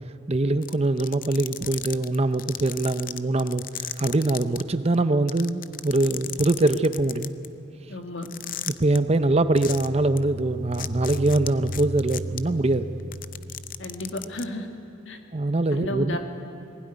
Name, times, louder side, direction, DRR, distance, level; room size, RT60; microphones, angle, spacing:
voice 1, 0.3-7.3 8.7-12.9 15.3-16.2, right 2 dB, 30° right, 11 dB, 0.7 m, -23 dB
sound 1, 0.6-4.6 4.9-5.0 5.3-7.5 8.2-9.0 9.6-9.9 10.2-10.3 10.7-12.4 13.0-14.4, left 12 dB, 45° left, 0.6 m, -34 dB
voice 2, 7.9-8.3 13.8-14.7 15.1-15.2 15.7-16.2, left 1 dB, 70° left, 5 dB, 1.9 m, -32 dB
sound 2, 8.9-14.5, equal, 85° right, 2.0 m, -37 dB
20.0 x 16.5 x 9.9 m, 2.5 s
head